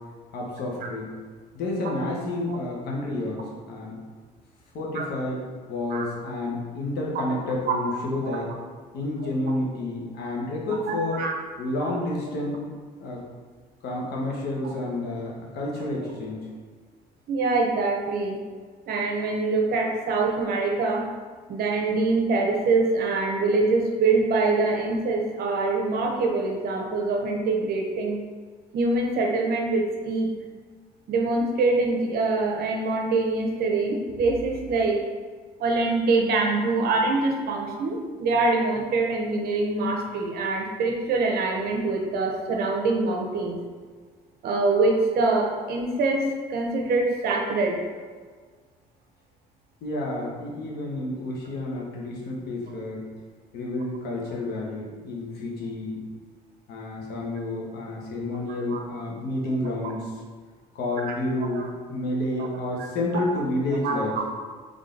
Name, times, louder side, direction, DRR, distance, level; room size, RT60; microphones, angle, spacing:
voice 1, 0.3-1.1 1.5-3.4 3.7-3.9 4.7-5.4 5.7-8.5 8.9-11.2 11.6-12.6 13.0-13.2 13.8-16.4 49.8-53.0 53.5-56.0 56.7-60.1 60.7-61.6 61.9-64.1, left 2 dB, 70° left, -2 dB, 1.2 m, -30 dB
voice 2, 10.9-11.3 11.8-11.9 17.3-18.4 18.9-21.1 21.5-28.2 28.7-30.3 31.1-35.0 35.6-43.6 44.4-47.8 58.7-58.8 61.0-61.1 61.5-61.7 62.4-62.5 63.1-63.3 63.8-64.2, right 3 dB, 65° right, 1 dB, 0.9 m, -24 dB
3.7 x 3.6 x 3.8 m, 1.5 s
cardioid pair, 110°, 17 cm